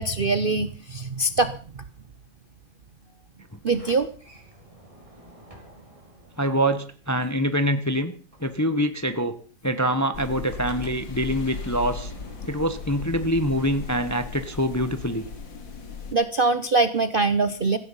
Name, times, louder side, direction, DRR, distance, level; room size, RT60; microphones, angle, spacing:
voice 1, 0.0-1.5 3.6-4.1 16.1-17.8, right 3 dB, 90° right, 11 dB, 0.4 m, -23 dB
Sliding door, 3.6-7.8 8.1-14.5, right 1 dB, 15° right, 4.5 m, -52 dB
voice 2, 6.4-8.1 8.4-9.3 9.6-12.1 12.5-15.3, equal, 20° left, 10 dB, 0.5 m, -25 dB
sound 1, 10.1-16.1, left 4 dB, 70° left, 2.8 m, -37 dB
16.5 x 14.5 x 5.6 m, 0.42 s
omnidirectional pair, 2.2 m